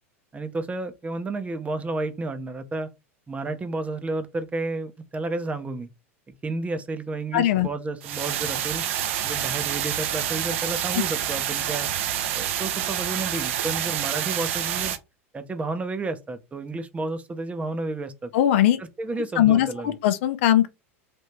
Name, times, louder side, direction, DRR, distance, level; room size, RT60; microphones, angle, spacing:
voice 1, 0.3-2.9 3.3-5.9 6.3-8.8 9.2-11.9 12.3-14.9 15.3-18.3 18.8-19.9, right 3 dB, 15° right, 0.7 m, -31 dB
voice 2, 7.3-7.7 18.3-18.8 19.4-20.7, left 12 dB, 60° left, 0.5 m, -20 dB
sound 1, 8.0-15.0, right 10 dB, 60° right, 0.6 m, -28 dB
3.5 x 2.7 x 4.2 m
figure-of-eight pair, 85°, 8 cm